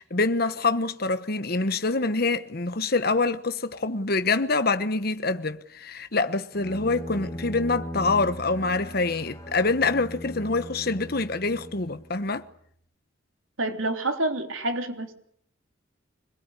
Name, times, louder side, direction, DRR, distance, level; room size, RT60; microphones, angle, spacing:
voice 1, 0.0-12.4, left 3 dB, 50° left, 1.2 m, -25 dB
Bowed string instrument, 6.5-12.4, equal, 15° left, 2.5 m, -39 dB
voice 2, 13.6-15.1, right 2 dB, 85° right, 3.5 m, -28 dB
25.0 x 21.0 x 9.9 m
head